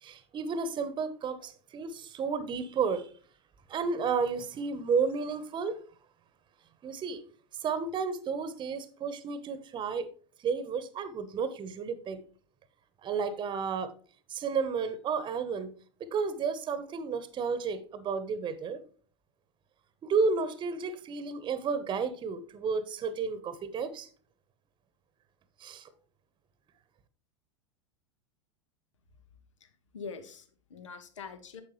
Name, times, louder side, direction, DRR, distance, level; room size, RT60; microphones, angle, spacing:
voice 1, 0.0-3.1 3.7-5.8 6.8-7.2 7.6-10.1 10.4-12.2 13.0-13.9 14.3-15.7 16.1-18.8 20.0-24.1 25.6-25.9, right 5 dB, 30° right, 1.0 m, -32 dB
voice 2, 29.6-31.6, left 5 dB, 75° left, 1.3 m, -44 dB
9.1 x 7.3 x 3.2 m
hypercardioid pair, 90°, 16 cm